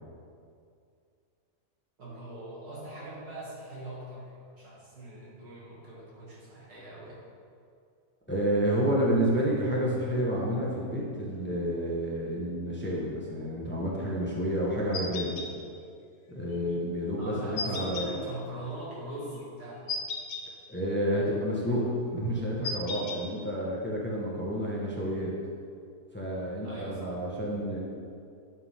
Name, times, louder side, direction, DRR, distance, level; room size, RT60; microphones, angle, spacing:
voice 1, 2.0-7.2 17.2-19.9 26.6-27.1, right 1 dB, 85° right, -7 dB, 3.0 m, -41 dB
voice 2, 8.3-15.4 16.3-18.1 20.7-25.3 26.1-27.8, equal, 10° left, -5 dB, 1.2 m, -29 dB
sound 1, 14.9-15.5 17.6-18.1 19.9-20.4 22.6-23.2, left 3 dB, 65° left, 1.4 m, -34 dB
10.5 x 6.5 x 3.6 m, 2.4 s
omnidirectional pair, 1.7 m